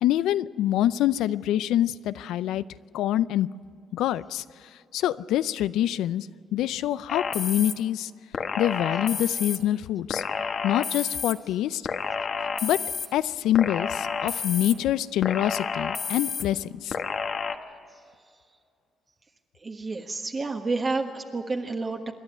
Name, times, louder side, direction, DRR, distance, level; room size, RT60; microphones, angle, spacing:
voice 1, 0.0-2.6 2.9-3.5 3.9-4.4 4.9-8.1 8.6-10.2 10.6-11.8 12.6-12.8 13.1-17.0, left 12 dB, 85° left, 16 dB, 0.4 m, -25 dB
sound 1, 7.1-7.7 8.3-9.6 10.1-11.3 11.8-13.1 13.5-14.7 15.2-16.4 16.9-17.5, left 6 dB, 55° left, 1.2 m, -30 dB
voice 2, 19.6-22.1, right 3 dB, 35° right, 3 dB, 1.3 m, -30 dB
27.0 x 10.5 x 9.7 m, 2.3 s
cardioid pair, 90°, 0 cm